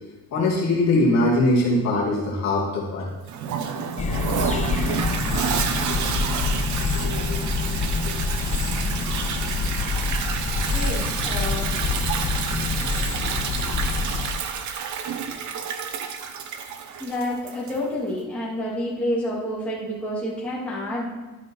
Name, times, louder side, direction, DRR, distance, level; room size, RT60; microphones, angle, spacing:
voice 1, 0.3-3.1 4.6-4.7 5.9-6.5 6.9-7.7 8.0-8.1, left 2 dB, 45° left, -4 dB, 2.5 m, -23 dB
Toilet flush, 3.3-17.9, right 7 dB, 50° right, 0.9 m, -29 dB
sound 1, 4.0-14.3, left 4 dB, 20° left, 0.5 m, -26 dB
voice 2, 10.7-11.9 17.0-21.1, left 1 dB, 5° left, -8 dB, 2.5 m, -29 dB
12.0 x 5.4 x 5.7 m, 1.2 s
cardioid pair, 165°, 37 cm